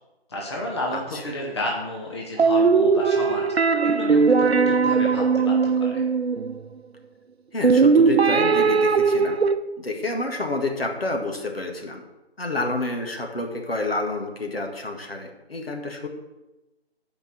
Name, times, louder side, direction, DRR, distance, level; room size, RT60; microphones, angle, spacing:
voice 1, 0.3-3.4 3.8-6.0, left 1 dB, 25° left, -2 dB, 1.1 m, -32 dB
voice 2, 0.9-1.3 7.5-9.4 9.8-12.0 12.4-16.1, left 2 dB, 65° left, 3 dB, 1.9 m, -29 dB
sound 1, 2.4-6.6 7.6-9.6, right 5 dB, 75° right, 0.7 m, -19 dB
8.0 x 5.3 x 7.6 m, 1.0 s
figure-of-eight pair, 160°, 32 cm